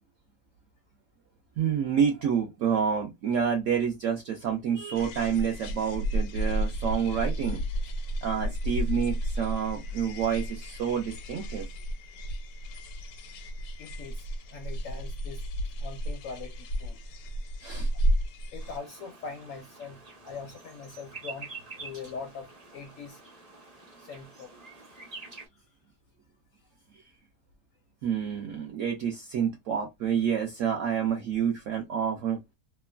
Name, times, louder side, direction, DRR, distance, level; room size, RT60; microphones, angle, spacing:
voice 1, 1.6-7.6 8.2-11.7 17.6-17.9 28.0-32.4, right 7 dB, 75° right, 0.7 m, -28 dB
sound 1, 5.0-18.8, equal, 90° left, 1.2 m, -32 dB
voice 2, 13.8-15.4 15.8-17.0 18.5-20.0 20.2-23.2 24.0-25.1 25.5-25.7, left 5 dB, 70° left, 0.7 m, -42 dB
sound 2, 18.6-25.5, right 4 dB, 35° right, 0.7 m, -47 dB
2.9 x 2.1 x 2.2 m
omnidirectional pair, 1.8 m